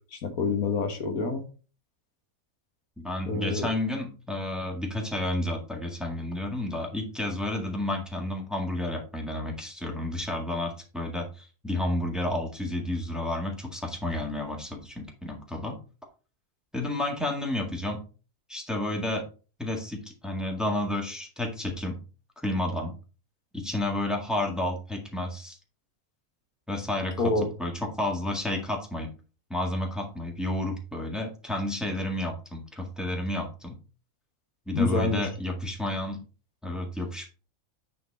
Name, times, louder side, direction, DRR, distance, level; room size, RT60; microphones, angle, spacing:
voice 1, 0.1-1.4 3.3-3.7 27.2-27.5 34.7-35.3, left 3 dB, 90° left, 5 dB, 1.9 m, -27 dB
voice 2, 3.0-15.8 16.7-18.0 18.5-19.2 19.6-22.0 22.4-22.9 23.5-25.6 26.7-27.2 27.6-29.1 29.5-33.8 34.7-36.2 36.6-37.3, left 1 dB, ahead, 0 dB, 1.7 m, -31 dB
9.1 x 4.4 x 4.2 m, 0.36 s
omnidirectional pair, 1.5 m